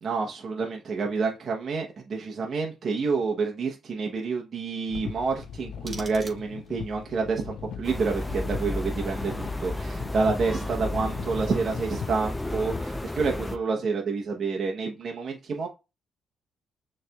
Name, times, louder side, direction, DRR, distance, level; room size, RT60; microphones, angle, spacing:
voice 1, 0.0-15.7, right 4 dB, 50° right, 0.9 m, -28 dB
sound 1, 4.9-12.8, left 7 dB, 70° left, 0.6 m, -40 dB
sound 2, 5.4-6.9, right 2 dB, 25° right, 1.5 m, -45 dB
sound 3, 7.8-13.6, left 1 dB, 10° left, 0.5 m, -33 dB
6.6 x 3.2 x 2.3 m
cardioid pair, 90°, 0 cm